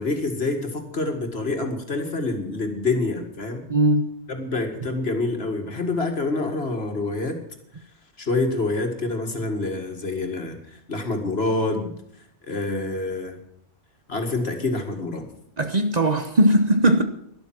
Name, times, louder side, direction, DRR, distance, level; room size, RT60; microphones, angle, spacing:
voice 1, 0.0-3.6 4.3-7.4 8.2-11.9 12.4-13.4 14.1-15.3, left 2 dB, 60° left, 2.3 m, -27 dB
voice 2, 3.7-4.1 15.6-17.0, right 1 dB, 40° right, 1.0 m, -19 dB
12.5 x 12.0 x 6.0 m
omnidirectional pair, 1.2 m